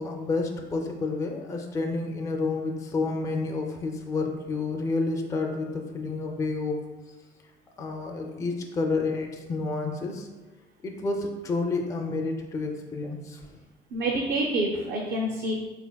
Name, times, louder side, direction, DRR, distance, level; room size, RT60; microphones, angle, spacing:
voice 1, 0.0-6.8 7.8-10.3 10.8-13.4, left 3 dB, 20° left, 2 dB, 0.3 m, -29 dB
voice 2, 13.9-15.5, right 1 dB, 60° right, 0 dB, 0.5 m, -27 dB
3.8 x 3.4 x 2.2 m, 1.3 s
cardioid pair, 110°, 17 cm